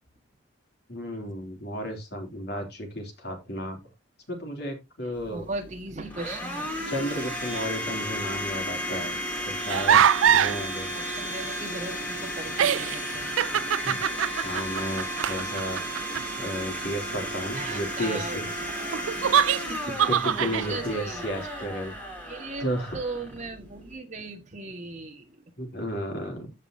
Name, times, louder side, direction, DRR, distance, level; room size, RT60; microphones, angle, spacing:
voice 1, 0.9-3.8 4.3-5.5 6.8-9.2 9.5-10.0 10.3-10.9 13.8-14.0 14.4-15.8 16.4-18.5 19.9-21.9 22.6-23.0 25.6-26.5, equal, 55° left, 3 dB, 3.1 m, -33 dB
voice 2, 5.0-6.7 10.9-13.9 17.5-19.4 19.7-20.0 20.6-21.3 21.6-21.7 22.3-25.4, right 3 dB, 35° right, 4 dB, 1.7 m, -38 dB
Domestic sounds home sounds, 5.1-24.0, equal, 10° left, 3.0 m, -34 dB
sound 1, 9.7-10.6 12.0-12.1 12.5-16.2 18.9-20.7, right 9 dB, 80° right, 0.4 m, -23 dB
14.5 x 5.4 x 2.8 m, 0.22 s
head